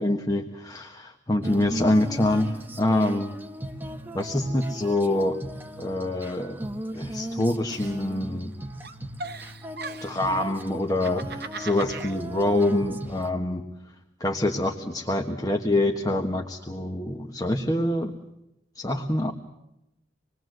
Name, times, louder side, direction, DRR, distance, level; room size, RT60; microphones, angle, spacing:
voice 1, 0.0-3.3 4.1-5.4 5.8-6.6 6.9-8.5 10.0-13.6 14.2-18.1 18.7-19.3, left 1 dB, 20° left, 3 dB, 1.4 m, -25 dB
Female singing, 1.4-13.3, right 1 dB, 10° right, 1.4 m, -37 dB
Giggle, 7.7-8.5 8.8-10.3 10.8-12.1, right 3 dB, 60° right, 1.4 m, -39 dB
27.0 x 21.5 x 7.9 m, 0.88 s
head